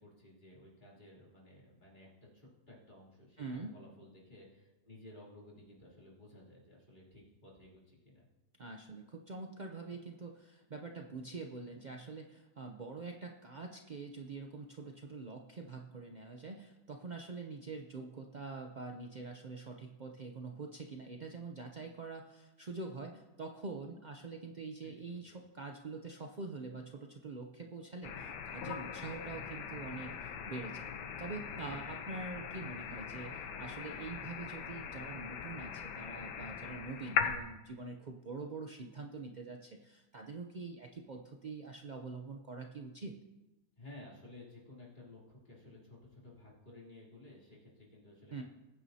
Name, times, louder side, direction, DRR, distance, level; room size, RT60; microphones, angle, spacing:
voice 1, 0.0-8.3 24.8-25.4 43.8-48.4, left 2 dB, 25° left, -6 dB, 3.4 m, -55 dB
voice 2, 3.4-3.7 8.6-30.9 31.2-43.2 48.3-48.4, right 3 dB, 65° right, 2 dB, 0.4 m, -45 dB
sound 1, 28.0-37.4, left 7 dB, 80° left, 1.5 m, -40 dB
21.0 x 9.2 x 2.8 m, 1.0 s
omnidirectional pair, 1.8 m